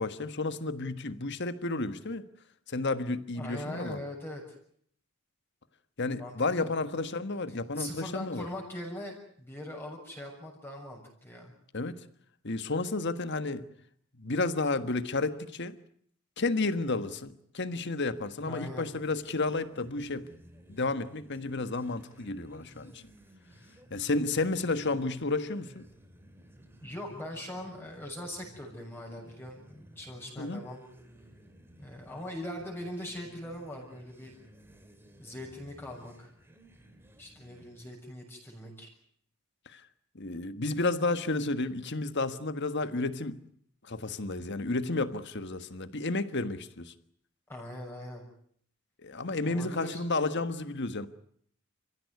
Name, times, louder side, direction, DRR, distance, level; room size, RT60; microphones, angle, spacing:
voice 1, 0.0-2.2 2.7-4.0 6.0-8.5 11.7-11.9 12.4-13.6 14.2-15.8 16.4-20.3 20.7-23.0 23.9-25.9 30.4-30.6 39.7-39.8 40.1-43.4 43.8-46.9 49.0-51.1, left 3 dB, 50° left, 11 dB, 1.5 m, -31 dB
voice 2, 3.4-4.4 6.2-6.7 7.8-11.5 18.4-18.9 26.8-30.8 31.8-34.3 35.2-36.3 37.2-38.9 47.5-48.2 49.5-50.0, left 1 dB, 10° left, 0 dB, 6.9 m, -41 dB
sound 1, 18.5-38.0, right 1 dB, 10° right, 2.6 m, -56 dB
30.0 x 16.0 x 9.5 m, 0.65 s
head